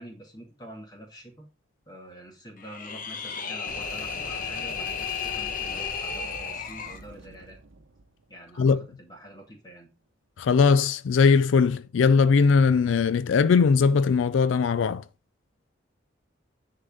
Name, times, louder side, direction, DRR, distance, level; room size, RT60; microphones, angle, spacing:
voice 1, 0.0-1.5 1.9-7.6 8.3-9.9, right 1 dB, 20° left, 2.2 m, -46 dB
sound 1, 2.6-7.0, left 6 dB, 45° left, 1.0 m, -33 dB
Boom, 3.7-8.9, right 3 dB, 90° right, 0.8 m, -45 dB
voice 2, 10.4-15.0, left 5 dB, 80° left, 0.4 m, -20 dB
9.9 x 3.9 x 4.9 m
head